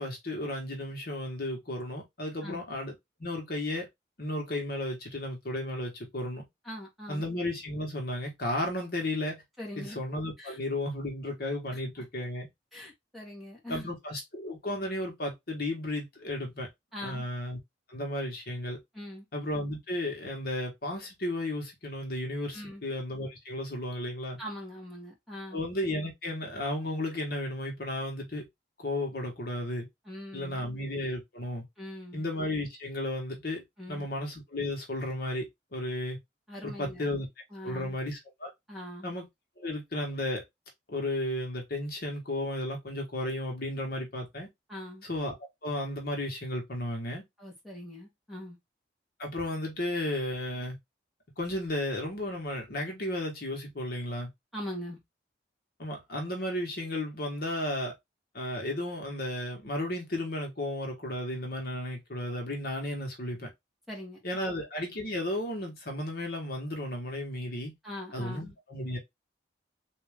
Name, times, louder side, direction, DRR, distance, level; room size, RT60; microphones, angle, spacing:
voice 1, 0.0-2.9 3.2-3.9 4.2-6.4 7.1-9.4 9.8-12.5 13.7-16.7 17.0-17.6 17.9-18.8 19.3-24.4 25.5-28.5 28.8-29.9 30.3-31.6 32.1-33.6 33.9-36.2 36.6-37.3 37.6-38.5 39.0-39.3 39.6-40.4 40.9-44.5 45.0-45.3 45.6-47.2 49.2-50.8 51.4-54.3 55.8-57.9 58.3-63.5 64.2-67.7 68.1-69.0, left 1 dB, 55° left, 1.2 m, -34 dB
voice 2, 6.6-7.3 9.6-10.0 10.4-10.6 11.7-11.8 12.7-13.9 16.9-17.3 18.9-19.2 22.5-22.8 24.4-25.6 30.0-30.8 31.8-32.3 33.8-34.1 36.5-37.2 37.5-38.0 38.7-39.1 44.7-45.0 47.4-48.6 54.5-55.0 63.9-64.6 67.8-68.5, left 1 dB, ahead, 1.5 m, -42 dB
3.6 x 2.7 x 3.4 m
head